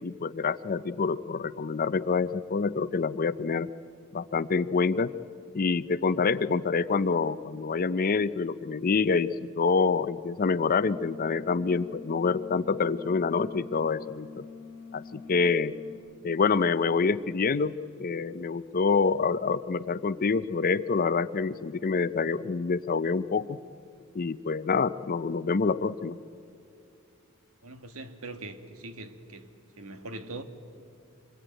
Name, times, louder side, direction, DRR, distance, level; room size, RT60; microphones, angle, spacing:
voice 1, 0.0-3.7 4.1-5.1 5.5-14.4 14.9-15.7 16.2-17.7 18.0-23.6 24.1-26.2, left 4 dB, 40° left, 15 dB, 0.5 m, -27 dB
sound 1, 10.8-16.0, left 4 dB, 40° right, 7.9 m, -45 dB
voice 2, 27.6-29.5 29.8-30.4, right 2 dB, 70° right, 8 dB, 1.7 m, -41 dB
25.5 x 20.5 x 9.0 m, 2.4 s
head